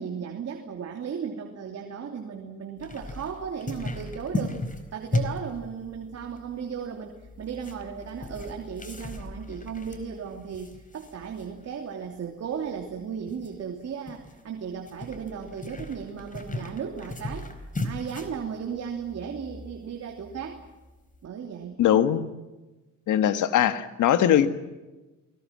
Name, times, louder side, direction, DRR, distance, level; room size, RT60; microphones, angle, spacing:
voice 1, 0.0-4.6 4.9-17.5 17.8-20.6 21.2-21.8, right 7 dB, 55° right, 2 dB, 3.1 m, -35 dB
sound 1, 2.8-21.2, left 2 dB, 25° left, 4.5 m, -37 dB
voice 2, 21.8-22.2 23.1-24.5, left 10 dB, 80° left, 10 dB, 1.8 m, -21 dB
28.5 x 20.0 x 7.6 m, 1.1 s
cardioid pair, 90°, 30 cm